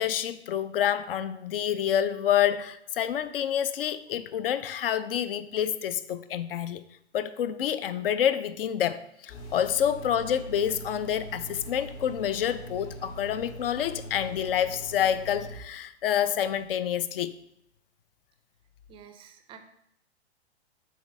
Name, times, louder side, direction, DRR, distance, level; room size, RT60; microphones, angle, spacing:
voice 1, 0.0-6.8 7.1-17.3, left 10 dB, 55° left, 0.5 m, -28 dB
sound 1, 9.3-15.6, right 1 dB, 75° left, 2.2 m, -42 dB
voice 2, 18.9-19.6, right 8 dB, 15° right, 0.5 m, -49 dB
7.8 x 3.3 x 5.1 m
hypercardioid pair, 120°, 34 cm